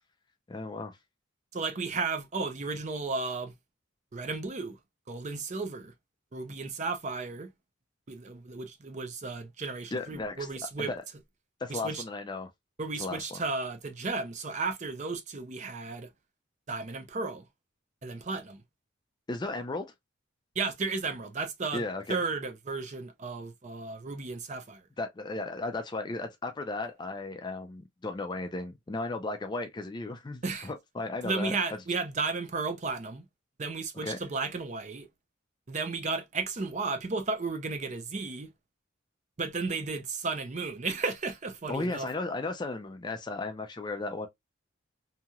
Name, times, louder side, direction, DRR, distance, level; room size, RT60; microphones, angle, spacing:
voice 1, 0.5-1.0 9.9-10.5 10.8-11.0 11.6-12.5 13.0-13.4 19.3-19.9 21.7-22.2 25.0-31.6 33.9-34.2 41.7-44.3, left 2 dB, 20° left, 0.3 m, -35 dB
voice 2, 1.5-3.5 4.1-4.8 5.1-5.9 6.3-7.5 8.1-10.9 11.7-12.0 12.8-16.1 16.7-17.5 18.0-18.6 20.6-24.8 30.4-30.7 31.2-33.2 33.6-35.1 35.7-38.5 39.4-42.1, right 4 dB, 35° right, 0.5 m, -34 dB
2.9 x 2.8 x 2.2 m
head